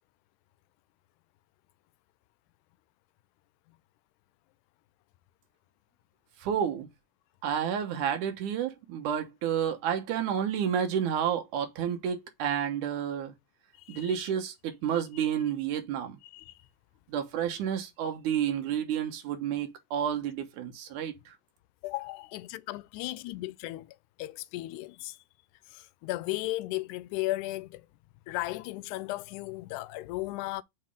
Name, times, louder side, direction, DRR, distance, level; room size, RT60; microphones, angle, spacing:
voice 1, 6.4-6.9 7.4-13.3 13.9-16.2 17.1-21.3, right 9 dB, 75° right, 2.5 m, -30 dB
voice 2, 13.8-14.3 15.1-15.3 16.2-16.5 21.8-25.2 25.7-27.9 28.3-30.6, left 18 dB, 80° left, 1.9 m, -36 dB
7.3 x 4.2 x 3.6 m
omnidirectional pair, 3.7 m